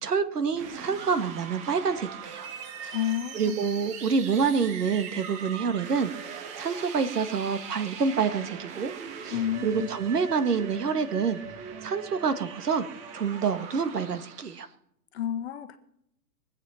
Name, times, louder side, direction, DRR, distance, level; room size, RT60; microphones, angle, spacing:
voice 1, 0.0-2.5 2.8-3.0 3.3-8.9 9.2-9.4 9.6-11.4 11.8-12.8 13.1-14.7, right 5 dB, 65° right, 1.9 m, -27 dB
sound 1, 0.5-14.7, right 7 dB, 15° right, 0.9 m, -41 dB
voice 2, 2.9-3.6 9.3-9.9 15.1-15.8, left 11 dB, 40° left, 1.2 m, -30 dB
23.0 x 8.7 x 5.8 m
figure-of-eight pair, 130°, 49 cm